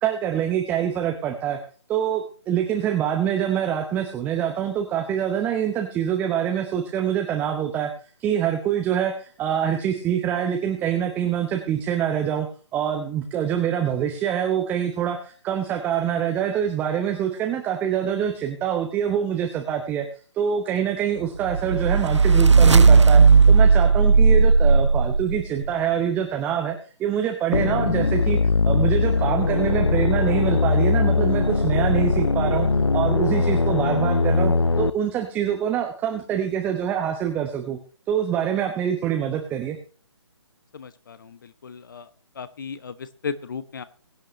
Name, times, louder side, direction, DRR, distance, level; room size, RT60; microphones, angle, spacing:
voice 1, 0.0-1.6 1.9-7.9 8.2-12.5 12.7-20.1 20.3-28.4 28.6-32.7 32.9-37.8 38.1-39.8, right 9 dB, 10° right, 4 dB, 0.9 m, -25 dB
sound 1, 21.5-25.7, right 4 dB, 75° right, 0.5 m, -15 dB
sound 2, 27.5-34.9, left 3 dB, 75° left, 0.7 m, -21 dB
voice 2, 40.7-42.1 42.3-43.8, left 6 dB, 45° left, 14 dB, 1.0 m, -35 dB
22.0 x 8.8 x 3.2 m, 0.39 s
figure-of-eight pair, 140°, 15 cm